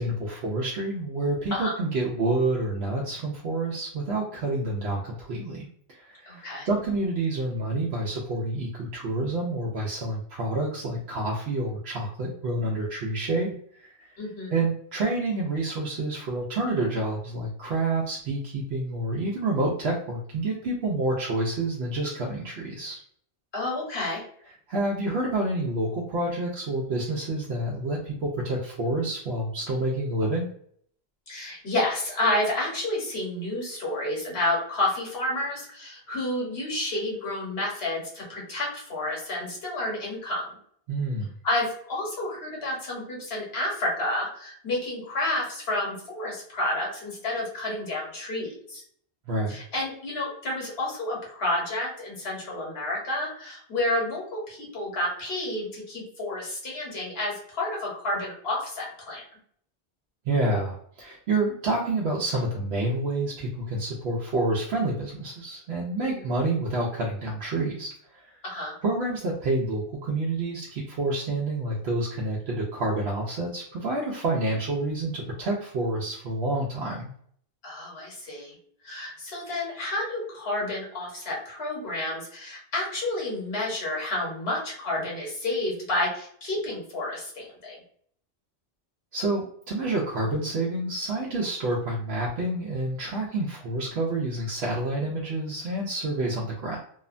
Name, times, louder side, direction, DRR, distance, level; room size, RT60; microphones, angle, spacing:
voice 1, 0.0-14.2 14.5-23.0 24.7-30.5 40.9-41.3 49.3-49.6 60.2-68.3 68.8-77.1 89.1-96.8, right 2 dB, 80° right, -3 dB, 0.8 m, -28 dB
voice 2, 6.3-6.7 14.2-14.6 23.5-24.2 31.3-40.5 41.4-48.8 49.5-59.2 68.4-68.8 77.6-78.5 78.8-87.8, left 1 dB, 75° left, -3 dB, 1.3 m, -30 dB
2.8 x 2.1 x 2.4 m, 0.62 s
omnidirectional pair, 1.1 m